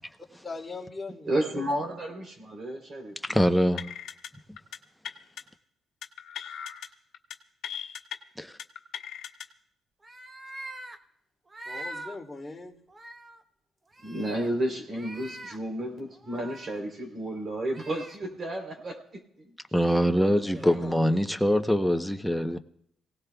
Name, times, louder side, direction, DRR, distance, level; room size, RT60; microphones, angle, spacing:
voice 1, 0.4-1.6 11.7-12.8 20.4-20.9, left 3 dB, 20° left, 3.1 m, -40 dB
voice 2, 1.3-3.4 14.0-19.5 20.0-20.9, right 1 dB, 45° right, 3.5 m, -32 dB
voice 3, 3.2-4.0 8.4-8.6 19.7-22.6, equal, ahead, 0.9 m, -24 dB
sound 1, 3.8-4.3 4.6-4.8 5.0-5.4 6.0-6.9 7.1-7.3 7.6-8.2 8.6-9.4, left 9 dB, 75° left, 0.9 m, -38 dB
sound 2, 10.0-11.0 11.5-12.2 12.6-12.7 12.9-13.4 13.9-14.5 14.9-15.6 16.1-16.8 17.7-18.2, right 1 dB, 25° right, 1.1 m, -42 dB
27.0 x 17.5 x 2.4 m
cardioid pair, 90°, 0 cm